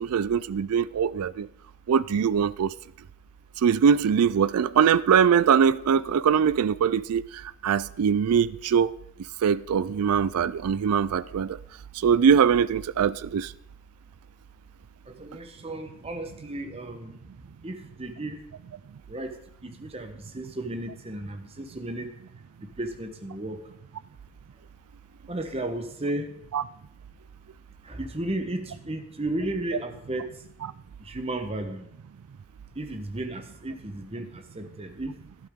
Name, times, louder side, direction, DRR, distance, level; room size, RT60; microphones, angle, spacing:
voice 1, 0.0-1.5 1.9-2.7 3.6-7.2 7.6-8.9 9.4-11.6 12.0-13.5 26.5-26.6, right 7 dB, 90° right, 0.4 m, -22 dB
voice 2, 15.1-17.2 17.6-18.4 19.1-19.3 19.6-22.1 22.8-23.6 25.3-26.3 27.8-30.4 31.0-31.9 32.8-35.1, right 1 dB, 25° right, 1.0 m, -34 dB
12.0 x 12.0 x 3.6 m
head